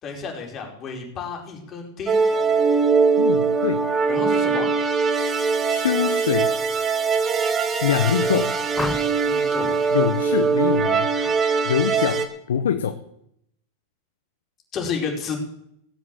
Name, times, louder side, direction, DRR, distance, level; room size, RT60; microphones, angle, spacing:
voice 1, 0.0-2.2 4.1-4.7 7.7-8.4 9.0-9.8 14.7-15.4, left 5 dB, 35° left, 1 dB, 4.6 m, -32 dB
sound 1, 2.1-12.3, right 5 dB, 25° right, 1.8 m, -21 dB
voice 2, 3.2-3.9 5.7-6.5 7.8-8.5 9.9-11.1 11.6-13.0, left 8 dB, 85° left, 9 dB, 1.0 m, -24 dB
sound 2, 8.7-9.4 11.1-11.4 11.8-12.2, left 3 dB, 10° left, 0.9 m, -32 dB
16.5 x 8.4 x 7.5 m, 0.75 s
hypercardioid pair, 115°, 0 cm